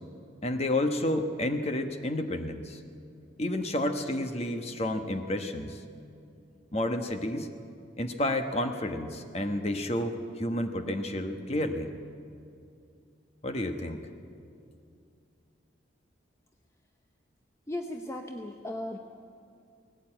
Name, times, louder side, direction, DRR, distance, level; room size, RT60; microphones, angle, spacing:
voice 1, 0.4-2.8 3.4-5.8 6.7-7.5 8.0-11.9 13.4-14.1, left 1 dB, 30° left, 6 dB, 1.1 m, -30 dB
voice 2, 17.7-19.0, left 1 dB, 15° left, 4 dB, 0.7 m, -36 dB
19.0 x 17.0 x 8.9 m, 2.5 s
head